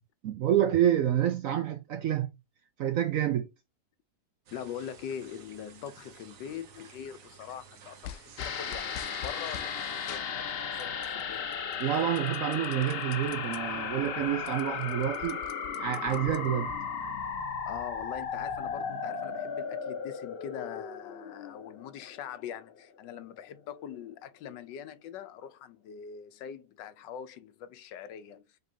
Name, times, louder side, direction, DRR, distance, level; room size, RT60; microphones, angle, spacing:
voice 1, 0.2-2.3 2.8-3.5 11.8-15.4 15.8-16.7, right 11 dB, 75° right, 0.7 m, -28 dB
voice 2, 4.5-11.6 17.0-17.1 17.7-28.5, left 9 dB, 90° left, 1.4 m, -43 dB
sound 1, 4.5-10.2, right 7 dB, 55° right, 1.2 m, -53 dB
sound 2, 8.0-9.7 10.1-11.2 11.5-13.6 14.0-14.1 14.3-16.8, left 11 dB, 70° left, 1.0 m, -45 dB
sound 3, 8.4-23.0 23.3-23.4, left 6 dB, 55° left, 0.7 m, -36 dB
5.3 x 3.6 x 2.7 m
omnidirectional pair, 1.9 m